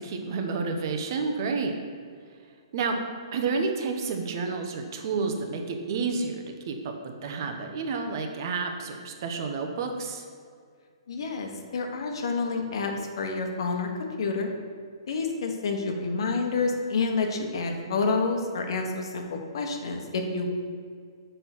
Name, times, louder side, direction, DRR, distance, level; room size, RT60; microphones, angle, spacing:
voice 1, 0.0-1.7 2.7-3.0 3.3-10.2, right 4 dB, 45° right, 4 dB, 1.0 m, -30 dB
voice 2, 11.1-14.5 15.1-20.5, left 4 dB, 65° left, 3 dB, 1.3 m, -29 dB
6.8 x 5.7 x 6.0 m, 2.1 s
hypercardioid pair, 155°, 3 cm